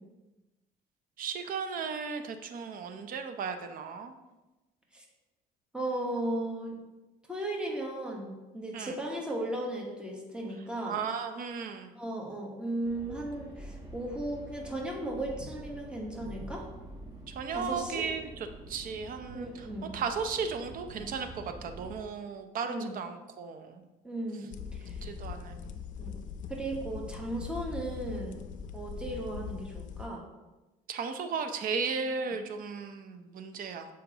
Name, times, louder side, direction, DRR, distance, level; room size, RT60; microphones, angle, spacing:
voice 1, 1.2-4.1 8.7-8.9 10.8-11.9 17.3-18.3 18.7-19.7 19.9-23.8 25.0-25.8 30.9-33.9, right 5 dB, 55° right, 7 dB, 0.7 m, -35 dB
voice 2, 5.7-6.8 7.3-11.0 12.0-16.6 17.5-18.0 19.3-19.9 22.6-22.9 24.0-25.0 26.0-26.2 26.5-28.4 28.7-30.2, right 1 dB, 5° right, -2 dB, 1.2 m, -36 dB
sound 1, 12.8-22.0, right 1 dB, 25° right, 1.2 m, -46 dB
sound 2, 24.5-30.1, left 6 dB, 50° left, 0.5 m, -41 dB
6.9 x 4.9 x 2.9 m, 1.1 s
cardioid pair, 110°, 17 cm